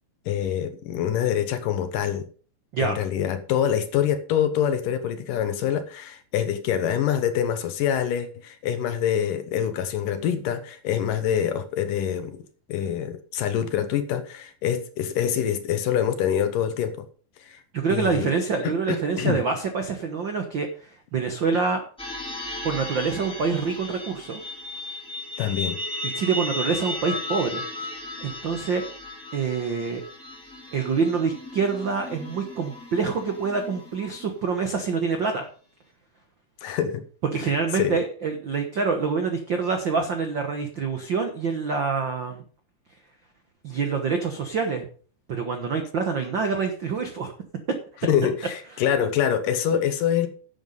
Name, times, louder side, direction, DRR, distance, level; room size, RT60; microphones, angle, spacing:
voice 1, 0.3-2.3 2.8-12.4 12.7-17.1 17.4-17.6 17.9-18.3 18.6-19.4 25.4-25.8 36.6-37.0 37.4-37.5 37.7-38.0 48.0-50.3, left 9 dB, 70° left, 2.5 m, -25 dB
voice 2, 17.7-21.8 22.6-24.4 26.1-27.6 28.2-28.9 29.3-30.0 30.7-35.5 37.3-42.4 43.6-44.8 45.3-47.3 49.7-49.8, right 5 dB, 75° right, 1.0 m, -26 dB
sound 1, 22.0-34.5, left 2 dB, ahead, 2.5 m, -35 dB
11.0 x 8.0 x 5.3 m
omnidirectional pair, 4.2 m